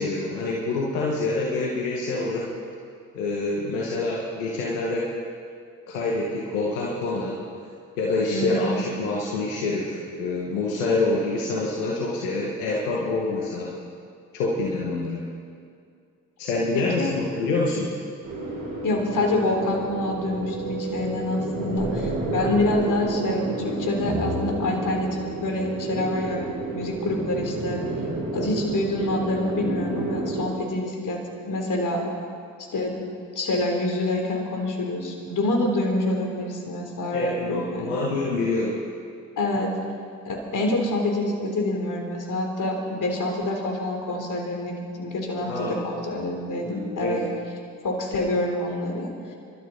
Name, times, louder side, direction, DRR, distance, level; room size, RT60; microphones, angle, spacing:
voice 1, 0.0-2.5 3.1-5.1 5.9-7.4 8.0-13.7 14.3-15.3 16.4-17.9 37.1-38.8 45.5-45.8 46.7-47.3, left 2 dB, 80° left, -3 dB, 1.7 m, -26 dB
voice 2, 8.3-8.7 16.7-17.1 18.8-27.8 28.3-32.1 32.7-33.1 33.4-38.1 39.4-39.7 40.3-47.2 47.8-49.1, left 2 dB, 55° left, 1 dB, 3.7 m, -27 dB
sound 1, 18.2-30.5, right 2 dB, 60° right, 5.4 m, -30 dB
27.0 x 12.5 x 4.2 m, 2.3 s
hypercardioid pair, 45°, 38 cm